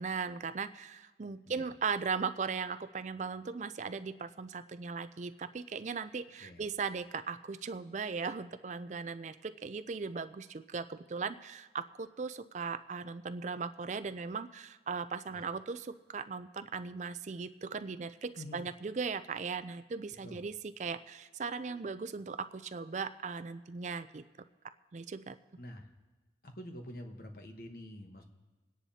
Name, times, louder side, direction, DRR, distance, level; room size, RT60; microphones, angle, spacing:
voice 1, 0.0-20.5 20.8-24.2 24.9-25.4, right 5 dB, 40° right, 11 dB, 0.4 m, -38 dB
voice 2, 25.6-25.9 26.4-28.2, left 1 dB, 50° left, 5 dB, 1.1 m, -47 dB
27.5 x 10.0 x 2.8 m, 1.3 s
head